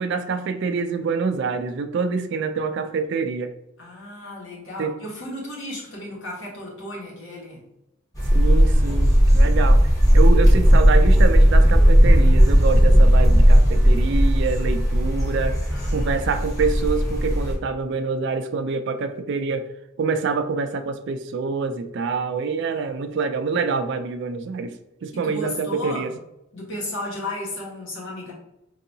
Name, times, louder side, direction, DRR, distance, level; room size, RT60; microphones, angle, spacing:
voice 1, 0.0-3.5 4.8-4.9 8.3-9.8 10.1-15.6 15.9-19.7 20.0-24.8 25.0-26.1, right 4 dB, 60° right, 9 dB, 0.3 m, -26 dB
voice 2, 3.8-7.6 15.7-16.3 22.7-22.9 25.1-26.2 26.5-28.3, left 1 dB, 65° left, -3 dB, 1.3 m, -34 dB
sound 1, 8.1-17.5, equal, 15° left, 0.8 m, -16 dB
4.5 x 2.7 x 2.7 m, 0.85 s
head